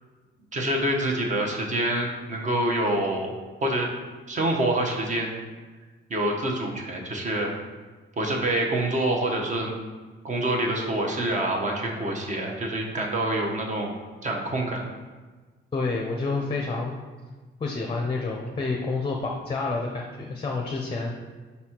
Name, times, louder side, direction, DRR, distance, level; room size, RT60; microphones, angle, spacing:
voice 1, 0.5-3.3 3.6-3.9 4.3-5.3 6.1-7.5 8.2-9.7 10.2-13.9 14.2-14.9, right 1 dB, 35° right, 0 dB, 1.0 m, -26 dB
voice 2, 15.7-16.9 17.6-21.1, left 3 dB, 25° left, 0 dB, 0.6 m, -29 dB
5.4 x 4.1 x 4.4 m, 1.3 s
wide cardioid pair, 150°, 21 cm